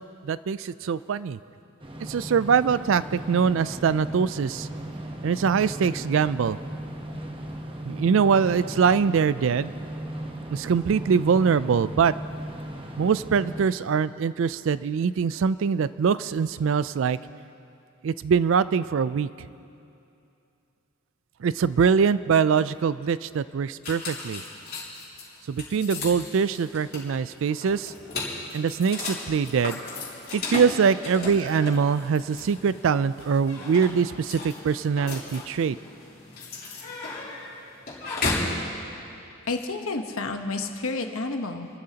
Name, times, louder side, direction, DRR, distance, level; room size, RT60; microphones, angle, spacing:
voice 1, 0.2-1.4 2.1-4.7 5.2-6.6 7.9-9.7 10.5-12.1 13.0-17.2 18.0-19.5 21.4-24.4 25.5-27.9 28.5-29.8 30.3-35.8, right 6 dB, 65° right, 16 dB, 0.3 m, -23 dB
sound 1, 1.8-13.6, right 1 dB, 25° right, 0.9 m, -37 dB
sound 2, 23.8-38.6, left 3 dB, 45° left, 3.4 m, -35 dB
voice 2, 39.5-41.7, left 3 dB, 80° left, 5 dB, 1.1 m, -30 dB
29.0 x 13.0 x 2.9 m, 2.7 s
head